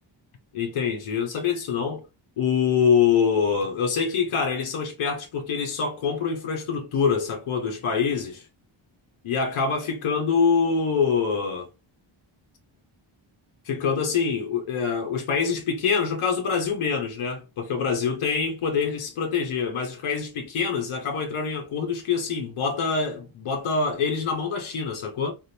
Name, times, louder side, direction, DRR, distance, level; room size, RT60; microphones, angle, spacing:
voice 1, 0.5-2.0 2.4-8.5 9.2-11.7 13.7-25.3, left 6 dB, 85° left, 1.0 m, -25 dB
3.5 x 2.5 x 2.7 m
wide cardioid pair, 165°, 48 cm